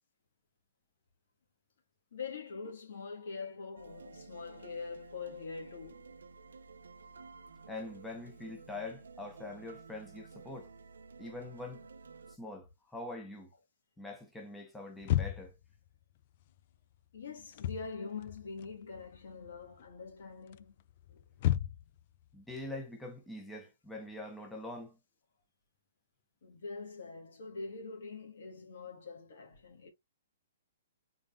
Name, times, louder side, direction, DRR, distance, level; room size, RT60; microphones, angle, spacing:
voice 1, 2.1-6.1 17.1-20.7 21.1-21.2 26.4-29.9, left 4 dB, 70° left, 1.6 m, -44 dB
sound 1, 3.8-12.4, right 4 dB, 85° right, 0.5 m, -53 dB
voice 2, 7.7-10.7 11.2-11.9 12.3-13.5 14.0-15.5 22.3-25.0, left 2 dB, 5° left, 1.1 m, -44 dB
sound 2, 15.0-15.7 17.4-17.9 18.2-19.2 19.5-19.9 20.5-22.0, left 12 dB, 50° left, 0.3 m, -32 dB
3.9 x 3.5 x 2.5 m
hypercardioid pair, 135°, 0 cm